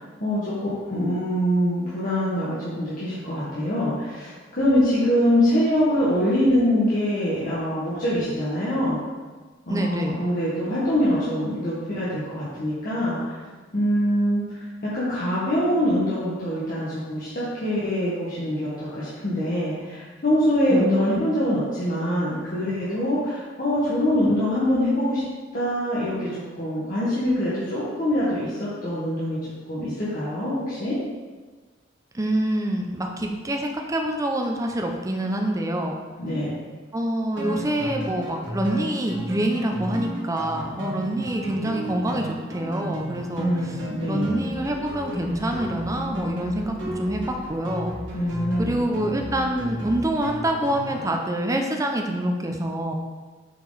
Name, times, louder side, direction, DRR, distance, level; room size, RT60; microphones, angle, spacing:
voice 1, 0.0-9.0 9.7-13.2 13.7-14.4 14.9-25.3 25.5-29.4 29.7-31.0 36.2-36.5 43.3-44.3 48.1-48.8, equal, 45° left, -10 dB, 1.5 m, -24 dB
voice 2, 9.7-10.2 20.7-20.9 21.1-21.2 32.1-36.0 36.9-43.7 44.1-47.2 47.5-47.9 48.6-52.9, right 1 dB, 15° right, 2 dB, 0.6 m, -26 dB
sound 1, 37.4-51.1, equal, 70° right, 1.6 m, -34 dB
6.8 x 4.7 x 4.0 m, 1.4 s
head